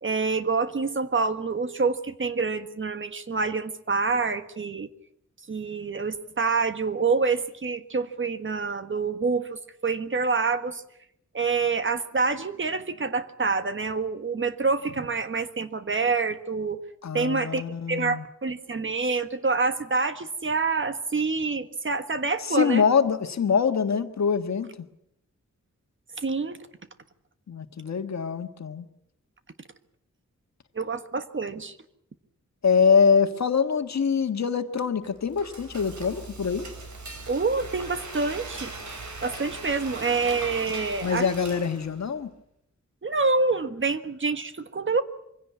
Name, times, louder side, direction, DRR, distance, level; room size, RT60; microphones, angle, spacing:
voice 1, 0.0-4.9 5.5-10.8 11.3-16.8 17.1-17.6 17.9-22.8 26.2-26.6 30.7-31.7 37.3-38.7 39.2-41.3 43.0-45.0, right 4 dB, 40° right, 10 dB, 1.5 m, -27 dB
voice 2, 17.0-18.2 22.4-24.7 27.5-28.8 32.6-36.7 41.0-42.3, left 6 dB, 65° left, 7 dB, 1.6 m, -24 dB
Frying (food), 35.0-42.1, right 3 dB, 70° right, 4.9 m, -39 dB
24.0 x 16.5 x 9.5 m, 0.77 s
wide cardioid pair, 135°, 30 cm